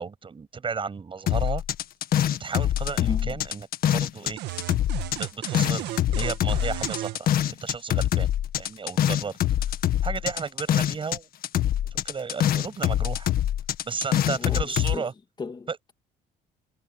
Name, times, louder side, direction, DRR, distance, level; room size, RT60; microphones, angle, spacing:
voice 1, 0.0-1.6 2.4-3.7 3.9-4.4 5.2-8.3 8.6-9.4 10.0-11.3 11.9-13.3 13.8-15.1 15.7-15.8, right 5 dB, 30° right, 7.8 m, -33 dB
sound 1, 1.3-4.3 4.6-11.2 11.4-15.0, left 11 dB, 60° left, 1.8 m, -24 dB
voice 2, 3.0-3.4 14.3-15.1 15.4-15.9, left 4 dB, 25° left, 2.5 m, -36 dB
sound 2, 4.4-7.2, right 16 dB, 80° right, 1.8 m, -34 dB
cardioid pair, 110°, 17 cm